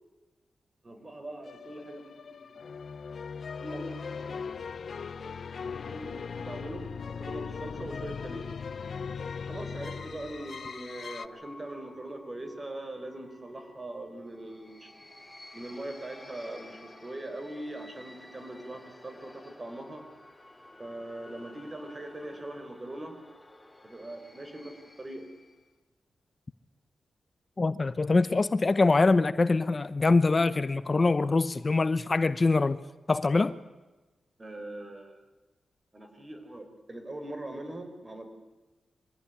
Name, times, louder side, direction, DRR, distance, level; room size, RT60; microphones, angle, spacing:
voice 1, 0.8-2.8 3.6-8.5 9.4-14.9 15.5-20.0 20.8-23.2 23.8-25.3 34.4-35.2 35.9-38.2, right 1 dB, 30° right, 5.1 m, -41 dB
sound 1, 1.4-11.3, left 5 dB, 65° left, 0.9 m, -39 dB
sound 2, 8.9-25.7, left 1 dB, 10° left, 3.0 m, -53 dB
voice 2, 27.6-32.8 33.1-33.6, left 3 dB, 35° left, 0.8 m, -24 dB
24.0 x 16.5 x 9.9 m
cardioid pair, 65°, 0 cm